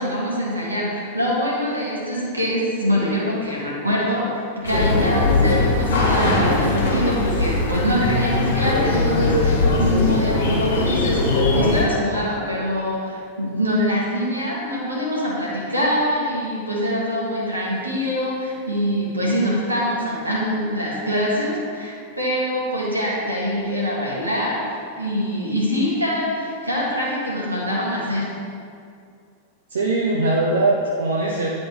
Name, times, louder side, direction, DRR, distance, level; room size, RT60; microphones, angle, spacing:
voice 1, 0.0-24.7 25.0-28.3, equal, 85° right, -5 dB, 1.6 m, -24 dB
sound 1, 4.6-11.8, left 2 dB, 60° left, 1.3 m, -20 dB
voice 2, 29.7-31.5, right 2 dB, 65° right, -2 dB, 0.6 m, -21 dB
9.9 x 4.2 x 3.2 m, 2.3 s
figure-of-eight pair, 90°, 0 cm